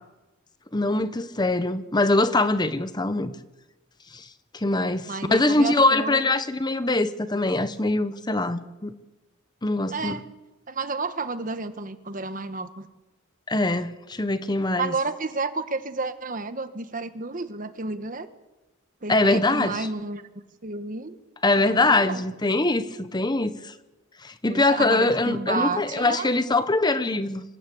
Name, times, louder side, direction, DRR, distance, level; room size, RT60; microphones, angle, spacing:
voice 1, 0.7-3.3 4.1-4.3 4.5-8.9 9.6-10.2 13.5-14.9 19.1-19.9 21.4-23.7 24.2-27.4, left 2 dB, 20° left, 12 dB, 0.9 m, -23 dB
voice 2, 5.1-6.3 9.9-10.2 10.7-12.9 14.8-18.3 19.0-20.3 20.6-21.2 21.6-22.2 24.5-26.3, right 3 dB, 40° right, 10 dB, 1.4 m, -31 dB
25.5 x 16.5 x 8.5 m, 1.1 s
head